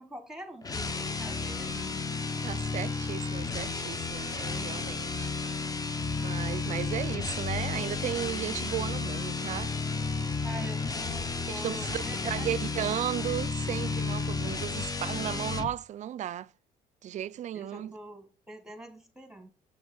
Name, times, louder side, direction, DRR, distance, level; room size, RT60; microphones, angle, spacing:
voice 1, 0.0-2.0 10.4-13.0 17.5-19.5, right 1 dB, 5° right, 1.7 m, -45 dB
sound 1, 0.6-15.8, left 4 dB, 20° left, 0.8 m, -32 dB
voice 2, 2.4-5.3 6.2-9.7 10.2-10.3 11.4-16.5 17.0-17.9, right 11 dB, 45° right, 0.4 m, -35 dB
7.7 x 6.1 x 3.9 m
cardioid pair, 110°, 17 cm